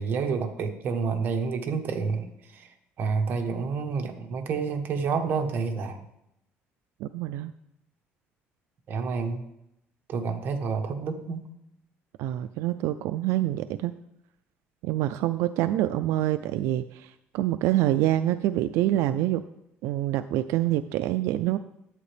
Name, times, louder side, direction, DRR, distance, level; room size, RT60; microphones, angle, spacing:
voice 1, 0.0-2.3 2.5-2.7 3.0-6.0 8.9-9.4 10.1-11.5, right 5 dB, 45° right, 6 dB, 1.1 m, -29 dB
voice 2, 7.0-7.5 12.2-14.0 14.8-19.4 19.8-21.6, right 14 dB, 85° right, 11 dB, 0.3 m, -26 dB
11.0 x 8.5 x 3.3 m, 0.83 s
cardioid pair, 155°, 5 cm